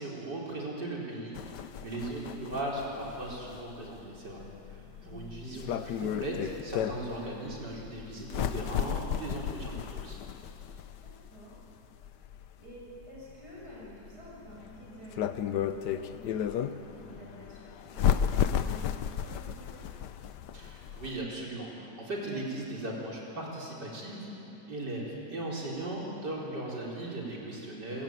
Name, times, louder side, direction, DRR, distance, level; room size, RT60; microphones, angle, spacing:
voice 1, 0.0-4.4 4.7-10.2 20.5-28.0, right 1 dB, 85° right, -3 dB, 4.9 m, -38 dB
sound 1, 1.4-21.2, left 9 dB, 85° left, 1.4 m, -34 dB
voice 2, 4.9-5.6 11.0-11.6 12.6-19.8, equal, 70° right, -5 dB, 7.1 m, -49 dB
27.0 x 15.5 x 9.2 m, 2.8 s
omnidirectional pair, 1.8 m